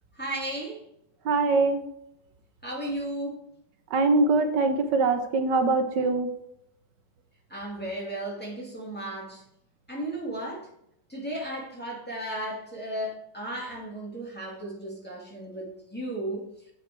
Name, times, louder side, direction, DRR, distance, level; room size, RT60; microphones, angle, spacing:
voice 1, 0.2-0.8 2.6-3.5 7.5-9.4 9.9-10.7 11.1-16.5, right 1 dB, 5° left, -4 dB, 2.2 m, -35 dB
voice 2, 1.2-1.8 3.9-6.3, right 3 dB, 80° right, 7 dB, 1.4 m, -23 dB
7.5 x 6.2 x 4.5 m, 0.77 s
omnidirectional pair, 1.9 m